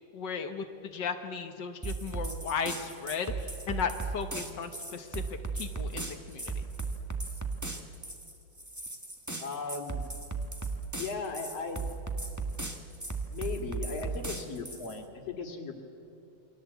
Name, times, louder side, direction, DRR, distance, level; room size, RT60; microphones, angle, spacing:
voice 1, 0.1-5.2 5.5-6.6, left 6 dB, 85° left, 6 dB, 0.9 m, -36 dB
sound 1, 1.8-15.0, right 3 dB, 30° right, 0.3 m, -36 dB
voice 2, 9.4-10.0 11.0-11.8 13.3-15.8, left 4 dB, 50° left, 3 dB, 3.1 m, -37 dB
29.0 x 23.5 x 8.3 m, 2.7 s
omnidirectional pair, 3.7 m